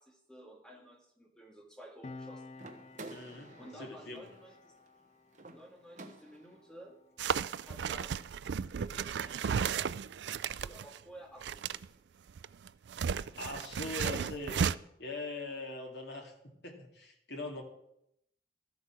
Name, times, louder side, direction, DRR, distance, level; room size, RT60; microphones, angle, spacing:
voice 1, 0.0-2.5 3.6-4.8 5.5-7.0 7.6-8.3 8.8-10.2 10.5-12.1 14.0-14.3, right 1 dB, 5° left, 1 dB, 1.9 m, -53 dB
Piano, 2.0-9.1 9.3-9.6, left 3 dB, 40° left, 0.4 m, -54 dB
sound 1, 2.5-6.7, right 2 dB, 45° right, 1.2 m, -51 dB
voice 2, 3.1-4.3 13.3-14.5 15.0-17.6, left 2 dB, 75° left, 1 dB, 2.4 m, -42 dB
sound 2, 7.2-11.0 11.4-11.9 12.3-14.7, right 7 dB, 80° right, 0.4 m, -34 dB
13.5 x 8.2 x 6.1 m, 0.77 s
head